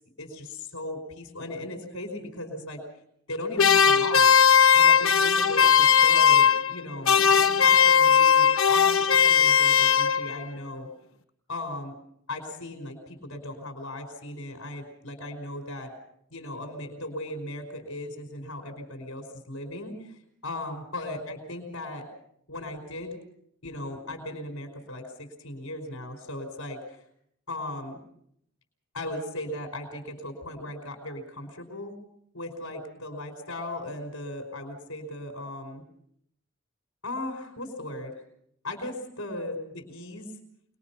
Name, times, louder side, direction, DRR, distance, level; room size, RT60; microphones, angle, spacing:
voice 1, 0.2-2.8 3.3-4.3 4.7-10.9 11.5-11.9 12.3-15.9 16.3-22.1 22.5-23.2 23.6-27.0 27.5-28.0 28.9-31.9 32.3-35.8 37.0-38.1 38.6-40.3, left 1 dB, 90° left, 1 dB, 4.8 m, -37 dB
sound 1, 3.6-6.8 7.0-10.4, left 7 dB, 70° left, 0.8 m, -19 dB
26.5 x 21.0 x 6.0 m, 0.70 s
head